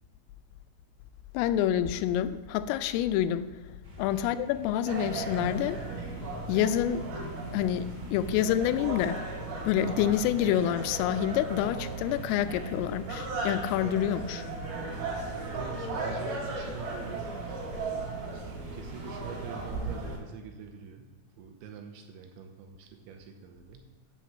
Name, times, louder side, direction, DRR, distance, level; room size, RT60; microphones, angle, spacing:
voice 1, 1.3-3.5 4.0-5.8 6.5-7.1 7.5-9.2 9.6-14.5, left 10 dB, 85° left, 12 dB, 3.1 m, -27 dB
sound 1, 3.8-19.7, right 1 dB, 30° right, 2.1 m, -52 dB
sound 2, 4.9-20.2, right 3 dB, 50° right, 4.8 m, -36 dB
voice 2, 15.5-17.7 18.1-23.9, right 6 dB, 80° right, 4 dB, 2.9 m, -46 dB
11.5 x 6.0 x 7.5 m, 1.2 s
omnidirectional pair, 5.9 m